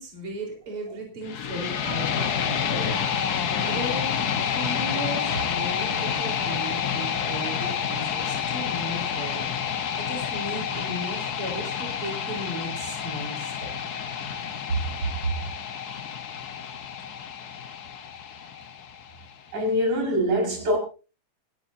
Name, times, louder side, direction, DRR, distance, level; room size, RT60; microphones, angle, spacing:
voice 1, 0.0-3.0 3.6-9.5 10.0-13.7, right 1 dB, 45° right, 1 dB, 5.0 m, -36 dB
sound 1, 1.2-19.2, left 8 dB, 85° left, 0.8 m, -29 dB
voice 2, 19.5-20.8, equal, 85° right, 0 dB, 6.9 m, -23 dB
27.0 x 13.0 x 2.7 m, 0.34 s
omnidirectional pair, 3.4 m